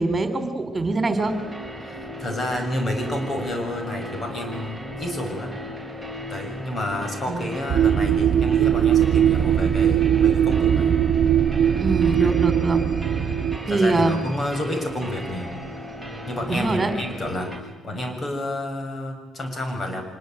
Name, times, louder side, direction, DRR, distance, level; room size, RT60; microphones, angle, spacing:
voice 1, 0.0-1.4 7.3-7.5 11.8-12.8 13.7-14.2 16.5-16.9, right 2 dB, 25° right, 8 dB, 3.9 m, -23 dB
sound 1, 1.2-17.6, equal, 5° left, 7.0 m, -36 dB
voice 2, 1.8-5.5 6.3-11.0 12.2-12.5 13.7-15.5 16.3-20.0, left 1 dB, 40° left, 5 dB, 7.0 m, -30 dB
sound 2, 7.7-13.6, right 9 dB, 65° right, 1.2 m, -20 dB
26.0 x 20.5 x 9.3 m, 1.1 s
cardioid pair, 90°, 0 cm